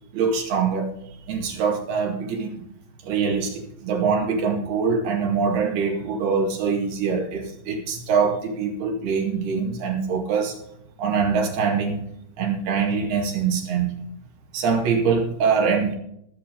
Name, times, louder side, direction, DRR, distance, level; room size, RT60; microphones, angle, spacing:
voice 1, 0.1-0.9 1.3-2.7 3.0-10.6 11.0-12.1 12.4-14.1 14.5-15.9, right 5 dB, 80° right, 1 dB, 4.2 m, -23 dB
20.0 x 7.2 x 3.8 m, 0.74 s
omnidirectional pair, 4.4 m